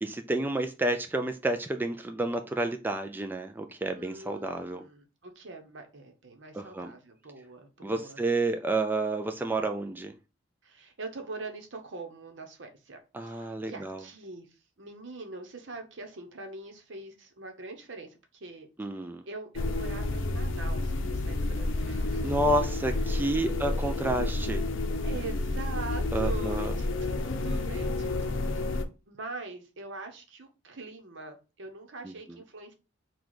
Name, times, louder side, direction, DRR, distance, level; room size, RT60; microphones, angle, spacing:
voice 1, 0.0-4.8 6.5-6.9 7.8-10.1 13.1-14.0 18.8-19.2 22.2-24.6 26.1-26.7 32.0-32.1, right 2 dB, 10° right, 0.3 m, -30 dB
voice 2, 3.9-8.2 10.6-22.4 23.1-23.6 25.0-28.8 29.1-32.7, right 3 dB, 70° right, 0.9 m, -43 dB
sound 1, 19.5-28.8, left 2 dB, 85° left, 0.6 m, -30 dB
4.0 x 2.3 x 4.6 m
head